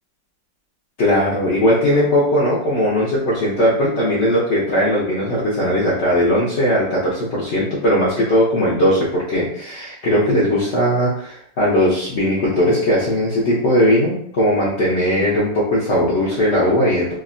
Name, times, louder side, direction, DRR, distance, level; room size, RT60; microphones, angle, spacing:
voice 1, 1.0-17.1, equal, 65° left, -8 dB, 0.7 m, -18 dB
3.4 x 2.1 x 2.4 m, 0.66 s
omnidirectional pair, 2.0 m